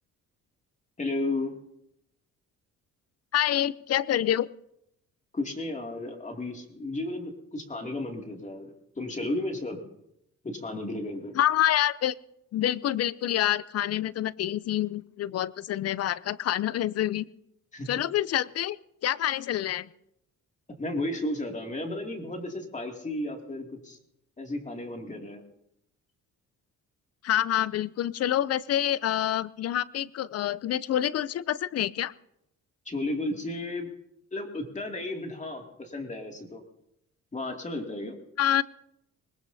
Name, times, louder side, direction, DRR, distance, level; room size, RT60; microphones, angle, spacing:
voice 1, 1.0-1.5 5.3-9.8 10.4-11.4 17.7-18.1 20.8-24.0 24.4-25.4 32.9-33.9 34.3-36.6 37.3-38.2, left 2 dB, 25° left, 2 dB, 2.5 m, -33 dB
voice 2, 3.3-4.5 11.4-12.1 12.5-17.3 17.9-18.8 19.0-19.9 27.2-32.1 38.4-38.6, left 12 dB, 55° left, 20 dB, 0.5 m, -27 dB
20.5 x 19.0 x 2.7 m, 0.79 s
cardioid pair, 85°, 29 cm